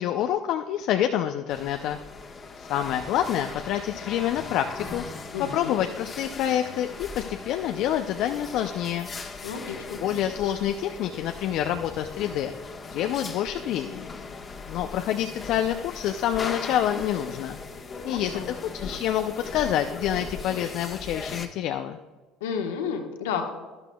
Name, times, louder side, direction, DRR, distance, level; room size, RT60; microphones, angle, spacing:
voice 1, 0.0-2.0 2.6-5.0 5.5-9.1 10.0-12.5 12.9-14.1 14.7-17.6 18.0-22.0, left 11 dB, 60° left, 7 dB, 0.5 m, -27 dB
sound 1, 1.5-21.5, left 4 dB, 35° left, 1.3 m, -39 dB
voice 2, 5.3-5.8 9.4-10.0 18.0-18.5 22.4-23.5, left 6 dB, 80° left, 3 dB, 1.3 m, -31 dB
12.0 x 12.0 x 2.3 m, 1.3 s
hypercardioid pair, 65°, 0 cm